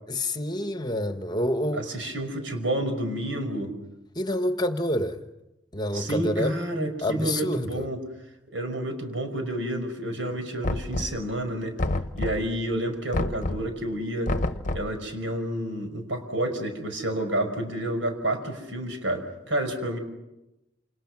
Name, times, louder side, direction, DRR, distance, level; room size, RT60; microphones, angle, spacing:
voice 1, 0.1-1.8 4.1-5.2 5.7-6.6 7.0-7.9, left 1 dB, 20° left, 1.3 m, -27 dB
voice 2, 1.7-3.7 5.9-8.0 8.5-11.8 12.2-14.3 14.7-20.0, right 1 dB, 85° right, 5.4 m, -29 dB
Knock, 10.6-11.4 11.8-12.6 13.1-13.8 14.3-15.0, left 2 dB, 40° left, 0.9 m, -29 dB
29.0 x 28.0 x 6.1 m
head